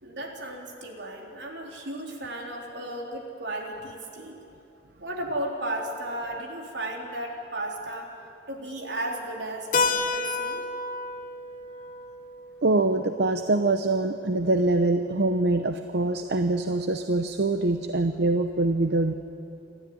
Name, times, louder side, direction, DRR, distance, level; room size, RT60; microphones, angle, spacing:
voice 1, 0.0-4.4 5.0-8.1 8.5-10.7, right 1 dB, 85° right, 1 dB, 3.5 m, -34 dB
Keyboard (musical), 9.7-14.2, left 3 dB, 50° left, 1.2 m, -31 dB
voice 2, 12.6-19.1, right 2 dB, 65° right, 8 dB, 0.8 m, -24 dB
28.0 x 13.0 x 9.5 m, 2.8 s
head